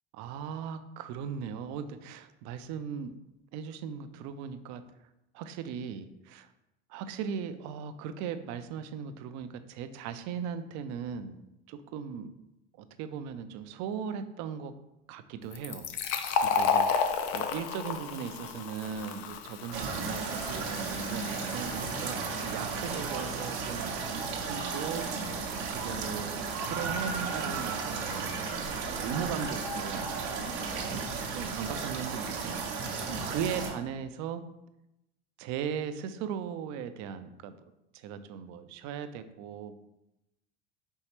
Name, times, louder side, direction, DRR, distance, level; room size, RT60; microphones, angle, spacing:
voice 1, 0.1-3.1 3.5-4.8 5.3-6.5 6.9-11.4 11.7-12.3 12.8-14.7 15.1-15.9 16.4-25.1 25.5-28.5 28.9-30.1 30.6-32.6 33.2-34.4 35.4-37.6 37.9-39.7, right 7 dB, 60° right, 11 dB, 0.5 m, -38 dB
Fill (with liquid), 15.5-22.9, left 6 dB, 70° left, 0.6 m, -32 dB
sound 1, 19.7-33.7, right 4 dB, 75° right, 0.8 m, -34 dB
4.5 x 3.1 x 3.0 m, 0.91 s
hypercardioid pair, 85°, 32 cm